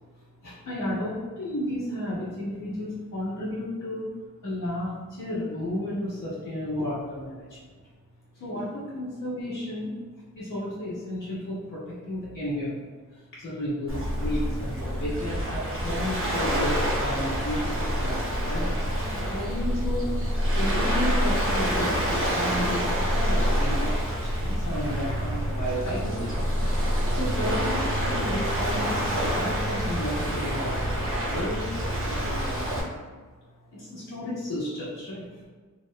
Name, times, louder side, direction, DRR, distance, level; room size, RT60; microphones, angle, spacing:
voice 1, 0.4-4.1 4.4-7.6 8.3-10.0 10.3-26.3 27.1-29.0 29.3-32.8 33.7-35.5, left 1 dB, 75° left, -11 dB, 1.4 m, -33 dB
Waves surf, 13.9-32.8, equal, 40° right, 0.9 m, -27 dB
3.4 x 3.1 x 2.2 m, 1.4 s
wide cardioid pair, 95°, 32 cm